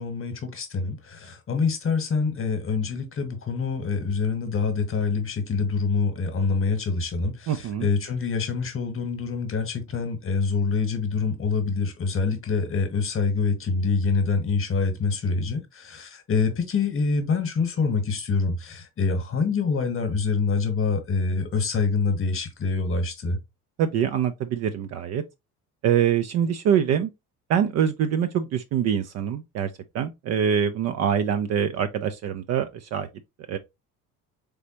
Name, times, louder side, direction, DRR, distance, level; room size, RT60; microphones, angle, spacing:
voice 1, 0.0-23.4, left 4 dB, 30° left, 1.2 m, -26 dB
voice 2, 7.5-7.9 23.8-25.2 25.8-27.1 27.5-33.1 33.5-33.6, right 8 dB, 40° right, 0.4 m, -24 dB
4.0 x 3.4 x 2.8 m
figure-of-eight pair, 55°, 45 cm